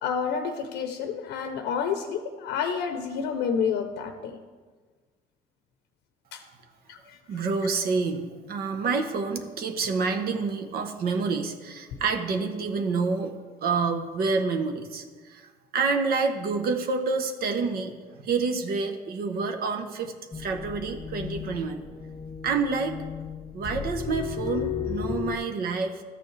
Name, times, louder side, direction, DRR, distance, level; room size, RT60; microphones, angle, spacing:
voice 1, 0.0-4.4 6.3-6.4 6.9-7.2 7.6-7.7, left 6 dB, 85° left, 6 dB, 0.7 m, -29 dB
voice 2, 7.3-13.3 13.6-15.5 15.7-17.9 18.2-21.8 22.4-23.0 23.5-26.0, right 4 dB, 65° right, 5 dB, 0.9 m, -28 dB
sound 1, 20.3-25.4, left 8 dB, 25° left, 0.5 m, -34 dB
13.5 x 7.0 x 3.2 m, 1.4 s
cardioid pair, 110°, 17 cm